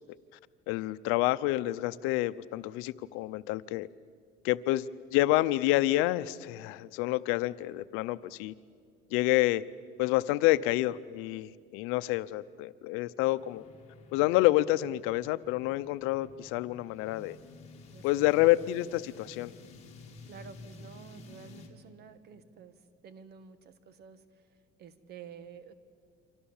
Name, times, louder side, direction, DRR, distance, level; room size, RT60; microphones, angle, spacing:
voice 1, 0.7-3.9 4.4-8.5 9.1-9.6 10.0-13.6 14.1-17.4 18.0-19.5, left 17 dB, 85° left, 15 dB, 0.7 m, -28 dB
sound 1, 13.4-21.7, left 2 dB, 30° left, 3.3 m, -52 dB
voice 2, 17.9-18.4 20.3-25.7, right 6 dB, 50° right, 12 dB, 1.6 m, -51 dB
29.0 x 25.5 x 7.3 m, 2.1 s
cardioid pair, 135°, 21 cm